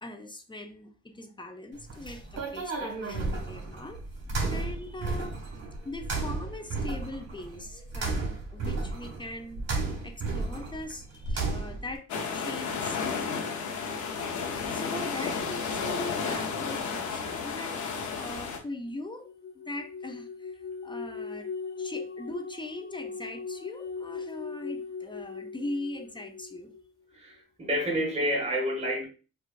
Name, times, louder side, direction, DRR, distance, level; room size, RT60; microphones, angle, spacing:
voice 1, 0.0-4.0 4.5-5.4 5.8-12.1 12.3-13.5 14.7-17.8 18.1-19.3 19.7-21.5 21.8-26.7, left 1 dB, 15° left, 0.5 m, -40 dB
sound 1, 1.8-12.0, right 3 dB, 55° right, 1.5 m, -33 dB
sound 2, 12.1-18.6, left 5 dB, 75° left, 0.8 m, -32 dB
sound 3, 19.0-26.8, left 5 dB, 35° left, 0.9 m, -39 dB
voice 2, 27.1-29.1, equal, 20° right, 1.4 m, -29 dB
4.4 x 2.3 x 2.5 m
cardioid pair, 90°, 30 cm